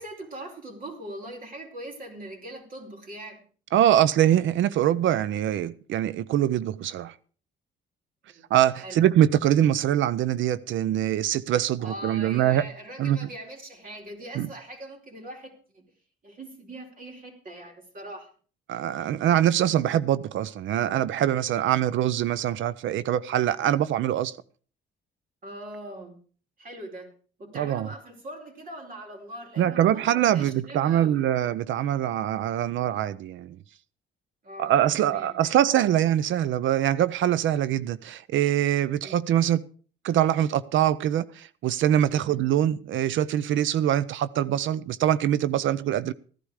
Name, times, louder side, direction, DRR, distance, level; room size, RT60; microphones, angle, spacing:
voice 1, 0.0-3.4 8.3-8.5 8.8-9.0 11.8-15.8 16.2-18.3 25.4-26.2 26.6-27.1 27.4-31.3 34.4-35.7 39.0-39.3 42.1-42.4, right 1 dB, 45° right, 4.6 m, -41 dB
voice 2, 3.7-7.1 8.5-12.7 13.0-13.3 14.3-14.5 18.7-24.4 27.5-27.9 29.6-33.6 34.6-39.6 40.0-46.1, right 11 dB, 75° right, 0.6 m, -23 dB
14.0 x 11.5 x 4.9 m
cardioid pair, 90°, 20 cm